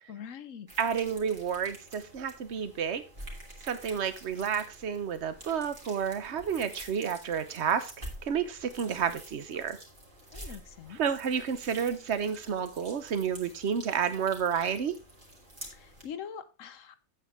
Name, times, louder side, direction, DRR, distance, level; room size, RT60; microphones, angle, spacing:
voice 1, 0.1-0.7 10.3-11.0 15.7-17.0, left 8 dB, 65° left, 13 dB, 1.0 m, -43 dB
sound 1, 0.7-16.0, right 1 dB, 35° right, 2.8 m, -48 dB
voice 2, 0.8-3.0 3.6-7.9 8.2-9.8 10.9-15.0, right 7 dB, 50° right, 11 dB, 1.2 m, -30 dB
8.7 x 8.5 x 3.5 m, 0.29 s
omnidirectional pair, 1.6 m